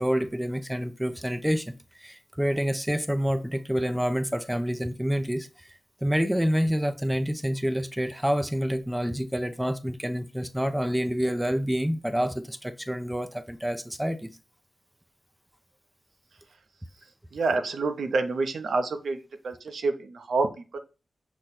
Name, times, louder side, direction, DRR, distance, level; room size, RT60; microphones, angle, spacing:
voice 1, 0.0-5.7 6.0-14.3, equal, 5° right, 0.4 m, -28 dB
voice 2, 17.3-19.2 19.4-20.5 20.7-20.8, right 3 dB, 75° right, 0.6 m, -27 dB
6.1 x 2.2 x 4.1 m
cardioid pair, 75°, 0 cm